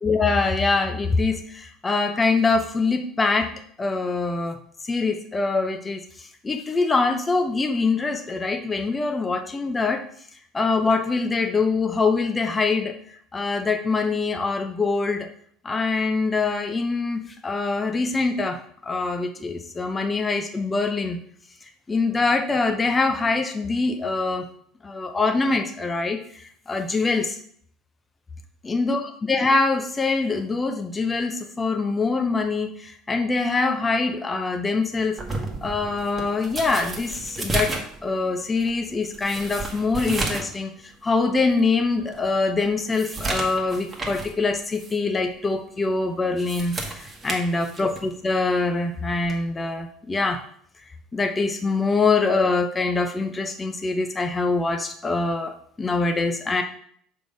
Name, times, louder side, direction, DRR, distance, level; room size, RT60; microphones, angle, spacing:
voice 1, 0.0-3.5 3.8-4.6 4.8-10.0 10.5-12.9 13.3-15.3 15.6-21.2 21.9-24.5 24.8-27.4 28.6-35.2 35.6-37.7 38.0-40.7 41.0-50.4 51.1-55.5 55.8-56.6, left 3 dB, 15° left, 5 dB, 0.6 m, -24 dB
sound 1, 35.2-40.6 40.9-41.0 41.6-41.7 42.1-44.4 44.7-44.9 46.2-48.1 49.2-49.5, right 3 dB, 15° right, 1.2 m, -32 dB
6.2 x 3.6 x 5.1 m, 0.63 s
cardioid pair, 130°, 0 cm